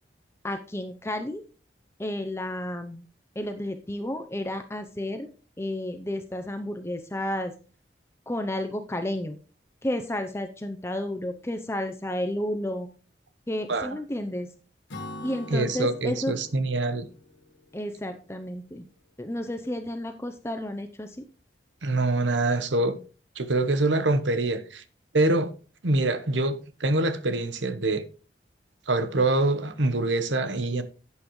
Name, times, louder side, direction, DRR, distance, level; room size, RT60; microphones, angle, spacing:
voice 1, 0.4-1.4 2.0-3.1 3.4-5.3 5.6-7.5 8.3-9.4 9.8-12.9 13.5-14.5 15.2-16.4 17.7-18.9 19.2-21.2, left 1 dB, 15° left, 0.6 m, -31 dB
Acoustic guitar / Strum, 14.9-18.5, left 1 dB, 80° left, 1.6 m, -44 dB
voice 2, 15.5-17.1 21.8-23.0 23.4-24.8 25.1-25.5 25.8-28.0 28.9-30.8, right 2 dB, 85° right, 1.0 m, -25 dB
11.5 x 8.5 x 3.1 m
head